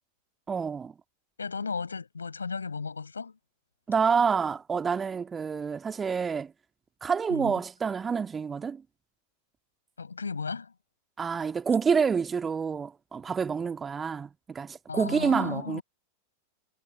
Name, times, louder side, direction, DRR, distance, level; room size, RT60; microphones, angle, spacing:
voice 1, 0.5-0.9 3.9-6.5 7.0-8.8 11.2-15.8, right 6 dB, 20° right, 1.8 m, -28 dB
voice 2, 1.4-3.4 7.3-7.6 10.0-10.7 14.9-15.8, left 5 dB, 75° left, 5.1 m, -35 dB
figure-of-eight pair, 90°, 0 cm